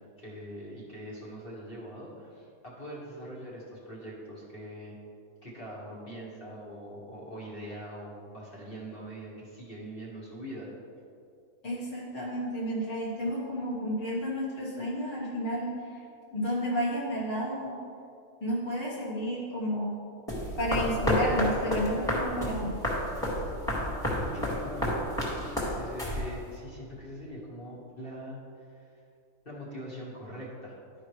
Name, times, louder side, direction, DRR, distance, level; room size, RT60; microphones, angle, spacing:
voice 1, 0.2-4.9 5.4-10.7 24.3-28.9 29.4-30.8, equal, 40° left, -6 dB, 1.7 m, -43 dB
voice 2, 11.6-15.7 16.3-17.8 18.4-20.0 20.6-22.8, equal, 20° left, -7 dB, 1.3 m, -31 dB
sound 1, 20.3-26.6, equal, ahead, 1.8 m, -30 dB
11.5 x 5.0 x 3.2 m, 2.5 s
omnidirectional pair, 1.5 m